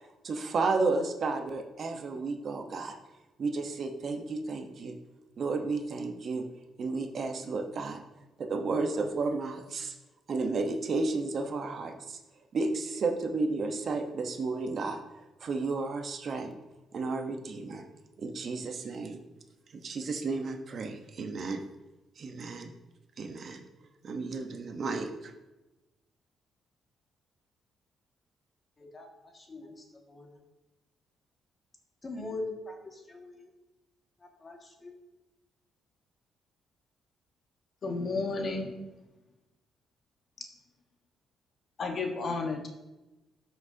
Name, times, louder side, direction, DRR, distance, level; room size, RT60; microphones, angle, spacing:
voice 1, 0.2-2.9 3.4-5.0 5.4-6.4 6.8-8.0 8.4-9.9 10.3-12.2 12.5-15.0 15.4-16.5 16.9-17.8 18.2-19.2 19.8-21.6 22.2-22.7 23.2-23.6 24.0-25.1, right 3 dB, 50° right, 1.1 m, -32 dB
voice 2, 28.8-30.4 32.0-33.5 34.2-34.9, left 2 dB, 30° left, 1.9 m, -42 dB
voice 3, 37.8-38.7 41.8-42.7, left 3 dB, 50° left, 1.4 m, -32 dB
13.0 x 6.0 x 2.8 m
cardioid pair, 90°, 0 cm